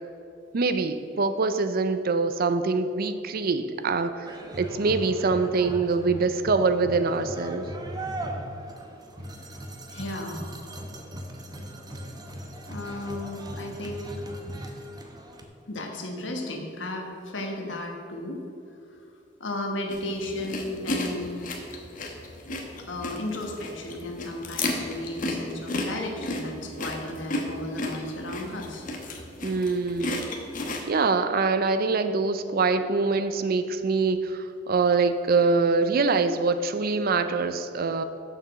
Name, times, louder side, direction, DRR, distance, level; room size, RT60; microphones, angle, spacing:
voice 1, 0.5-4.3 4.5-7.6 29.4-30.3 30.9-38.0, right 4 dB, 50° right, 11 dB, 0.5 m, -24 dB
sound 1, 4.2-15.4, equal, 20° right, 0.9 m, -38 dB
voice 2, 9.9-10.5 12.7-14.2 15.7-18.4 18.9-19.0 19.4-21.5 22.8-28.9, left 1 dB, 75° left, 2 dB, 1.4 m, -34 dB
sound 2, 19.9-30.8, left 2 dB, 45° left, 1.1 m, -34 dB
7.0 x 6.9 x 6.3 m, 2.6 s
head